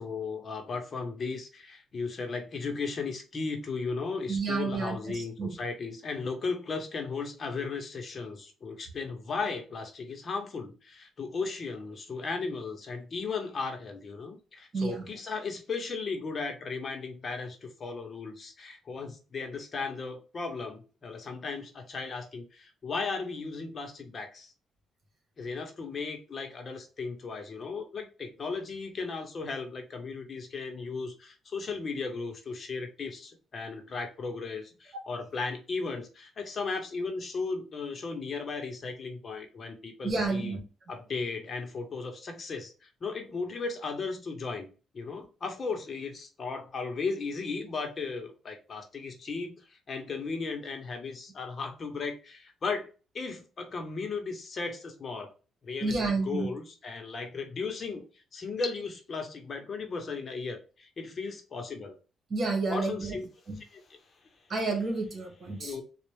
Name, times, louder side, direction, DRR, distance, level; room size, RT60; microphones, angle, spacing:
voice 1, 0.0-24.5 25.4-40.6 40.9-44.7 44.9-52.9 53.1-55.3 55.6-58.0 58.3-62.0 62.7-63.3 63.6-63.8 65.5-65.8, left 4 dB, 45° left, 1.0 m, -36 dB
voice 2, 4.3-5.6 14.7-15.0 34.9-35.0 40.0-40.6 55.8-56.5 62.3-63.1 63.5-63.6 64.5-65.7, right 3 dB, 45° right, 1.6 m, -30 dB
4.2 x 2.4 x 3.5 m
cardioid pair, 90°, 0 cm